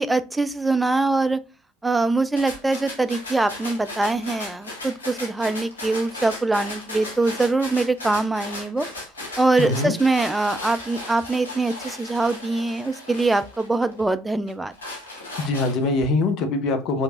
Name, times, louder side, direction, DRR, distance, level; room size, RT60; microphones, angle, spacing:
voice 1, 0.0-1.4 1.8-8.9 9.4-14.7, right 3 dB, 10° right, 0.4 m, -23 dB
sound 1, 2.4-14.0 14.5-16.0, left 2 dB, 80° left, 1.2 m, -36 dB
voice 2, 9.6-9.9 15.4-17.0, left 3 dB, 50° left, 0.7 m, -23 dB
3.2 x 3.1 x 2.4 m
figure-of-eight pair, 70°, 0 cm